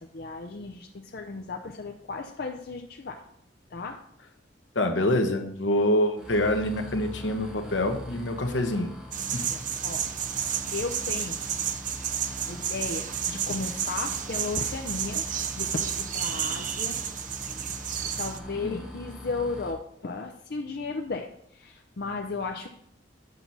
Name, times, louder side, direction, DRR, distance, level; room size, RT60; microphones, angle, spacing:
voice 1, 0.0-3.2 3.7-4.0 9.4-10.1 10.3-11.4 11.8-12.1 12.5-15.2 15.6-17.0 17.5-17.7 18.2-22.7, left 3 dB, 60° left, 3 dB, 0.6 m, -35 dB
voice 2, 4.7-8.9 9.3-9.4 18.6-18.8, left 1 dB, 80° left, 5 dB, 1.1 m, -26 dB
sound 1, 6.2-19.7, equal, 5° right, 1.9 m, -43 dB
sound 2, 9.1-18.4, right 9 dB, 45° right, 0.5 m, -31 dB
8.1 x 5.9 x 4.1 m, 0.70 s
head